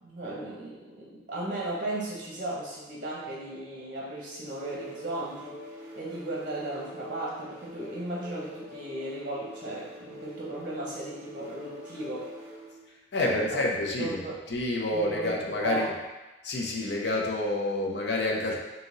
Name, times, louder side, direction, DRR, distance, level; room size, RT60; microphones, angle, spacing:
voice 1, 0.0-12.3 13.2-13.6 14.0-14.4 14.9-15.9, right 2 dB, 50° right, -6 dB, 0.9 m, -36 dB
sound 1, 4.4-12.8, left 1 dB, 15° right, 0.9 m, -45 dB
voice 2, 13.1-14.2 14.5-15.9 16.4-18.6, left 2 dB, 65° left, -1 dB, 0.6 m, -28 dB
3.8 x 2.8 x 3.9 m, 1.1 s
head